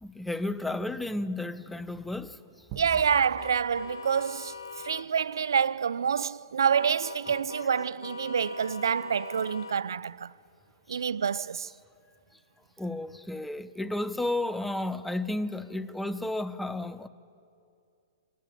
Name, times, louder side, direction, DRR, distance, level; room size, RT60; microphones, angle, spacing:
voice 1, 0.0-2.4 10.9-11.0 12.8-17.1, left 2 dB, 5° left, 0.8 m, -32 dB
sound 1, 2.7-5.2, right 9 dB, 40° right, 1.2 m, -46 dB
voice 2, 2.8-4.6 4.8-10.3 10.9-11.7, right 7 dB, 80° right, 0.4 m, -27 dB
sound 2, 3.4-5.1 6.8-9.8, left 5 dB, 90° left, 1.3 m, -42 dB
22.5 x 18.5 x 8.4 m
hypercardioid pair, 120°, 2 cm